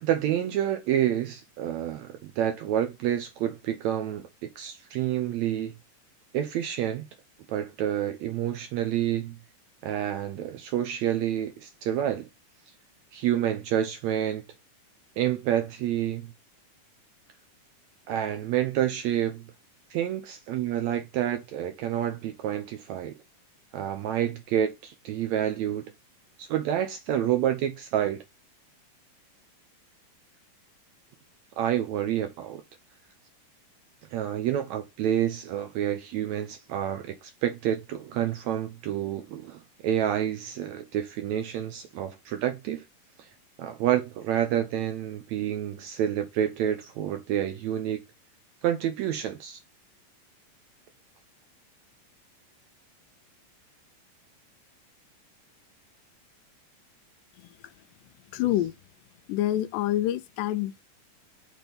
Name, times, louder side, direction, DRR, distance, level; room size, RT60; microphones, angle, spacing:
voice 1, 0.0-5.7 6.3-7.1 7.5-9.4 9.8-12.3 13.1-14.4 15.2-16.3 18.1-19.4 19.9-23.2 23.7-25.8 26.4-28.2 31.6-32.6 34.1-42.8 43.2-43.3 43.6-48.0 48.6-49.6, right 11 dB, 75° right, 1.7 m, -28 dB
voice 2, 58.3-58.7 59.3-60.8, left 13 dB, 90° left, 2.2 m, -27 dB
6.2 x 4.2 x 5.2 m
omnidirectional pair, 3.8 m